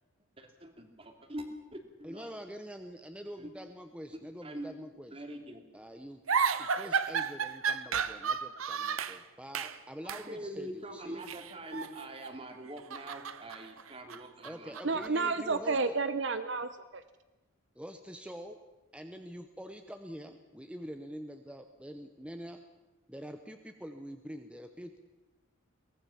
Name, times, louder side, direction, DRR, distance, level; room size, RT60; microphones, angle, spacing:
voice 1, 0.4-2.4 3.4-3.5 4.1-4.8 5.1-5.7 10.0-15.6, right 1 dB, 25° right, 5 dB, 2.5 m, -44 dB
voice 2, 2.0-5.2 5.7-6.2 6.6-11.3 14.4-16.0 17.8-18.6 18.9-22.6 23.1-25.0, equal, 5° right, 7 dB, 0.9 m, -45 dB
sound 1, 6.3-9.2 9.5-9.8 10.1-10.3 11.2-12.4 12.7-15.1, right 6 dB, 85° right, 1.0 m, -33 dB
voice 3, 14.8-17.0, right 4 dB, 60° right, 12 dB, 0.8 m, -31 dB
22.5 x 18.5 x 7.1 m, 1.1 s
head